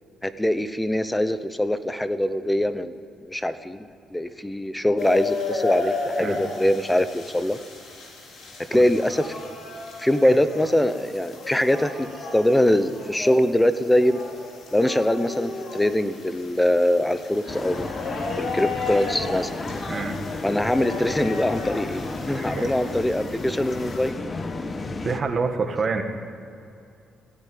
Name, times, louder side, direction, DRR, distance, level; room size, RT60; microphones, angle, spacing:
voice 1, 0.2-2.9 3.2-7.6 8.7-9.5 10.0-14.2 14.7-17.9 18.4-19.5 20.4-24.2, left 1 dB, 10° left, 12 dB, 0.8 m, -23 dB
sound 1, 5.0-24.1, left 3 dB, 70° left, 3.8 m, -34 dB
sound 2, 17.5-25.2, left 3 dB, 30° left, 1.1 m, -33 dB
voice 2, 22.3-22.7 25.0-26.0, right 4 dB, 40° right, 5 dB, 1.7 m, -27 dB
16.0 x 9.3 x 9.4 m, 2.6 s
cardioid pair, 90°, 0 cm